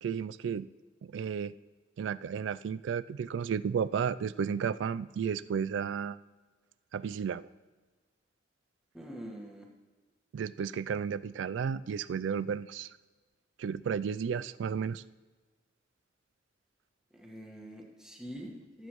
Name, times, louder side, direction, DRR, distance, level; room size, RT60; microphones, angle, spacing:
voice 1, 0.0-0.7 1.0-1.5 2.0-6.2 6.9-7.5 10.3-12.9 13.6-15.0, right 7 dB, 80° right, 16 dB, 0.3 m, -33 dB
voice 2, 8.9-9.7 17.1-18.9, equal, 5° right, -1 dB, 1.4 m, -45 dB
17.0 x 8.1 x 3.1 m, 1.3 s
head